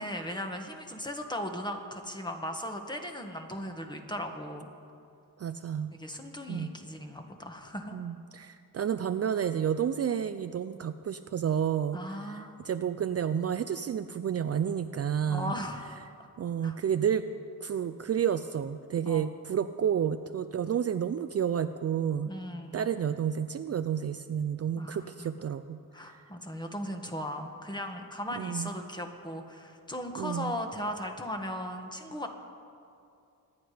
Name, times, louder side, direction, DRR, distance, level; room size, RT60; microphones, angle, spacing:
voice 1, 0.0-4.7 5.9-8.0 11.9-12.6 15.3-16.3 16.6-16.8 19.0-19.3 22.2-22.9 24.8-25.3 25.9-32.3, equal, 10° left, 4 dB, 1.6 m, -37 dB
voice 2, 5.4-5.9 6.5-6.7 7.9-12.0 12.3-15.5 16.4-17.3 17.6-22.3 22.7-25.8 26.1-26.2 28.4-28.7 30.2-30.5, right 8 dB, 45° right, 10 dB, 0.5 m, -30 dB
25.0 x 9.8 x 5.0 m, 2.6 s
cardioid pair, 95°, 36 cm